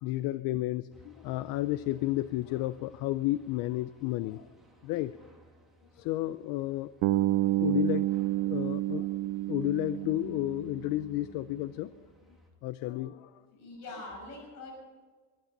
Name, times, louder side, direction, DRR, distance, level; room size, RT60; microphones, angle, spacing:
voice 1, 0.0-4.5 4.8-5.2 6.0-8.1 8.4-12.1 12.6-13.4, left 16 dB, 85° left, 15 dB, 0.6 m, -32 dB
sound 1, 0.9-12.5, left 1 dB, ahead, 2.7 m, -60 dB
Bass guitar, 7.0-11.1, right 16 dB, 65° right, 0.6 m, -29 dB
voice 2, 13.5-14.7, left 2 dB, 55° left, 1 dB, 5.9 m, -43 dB
22.0 x 11.5 x 5.3 m, 1.4 s
cardioid pair, 170°, 33 cm